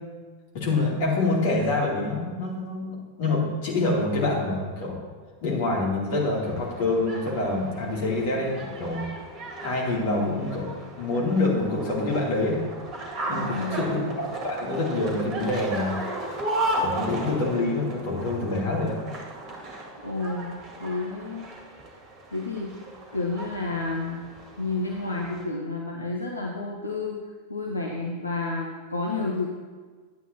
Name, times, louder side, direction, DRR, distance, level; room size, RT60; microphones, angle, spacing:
voice 1, 0.5-5.0 5.4-9.1 9.6-12.6 13.3-16.0 16.8-19.0, left 2 dB, 50° left, -4 dB, 2.9 m, -26 dB
sound 1, 6.2-25.4, right 1 dB, 30° right, 2.0 m, -35 dB
voice 2, 13.3-13.9 20.0-20.5 20.8-21.5 22.3-22.7 23.1-24.2 24.5-27.2 27.5-29.5, left 3 dB, 80° left, -1 dB, 0.9 m, -30 dB
11.5 x 9.1 x 2.9 m, 1.5 s
figure-of-eight pair, 90°, 0 cm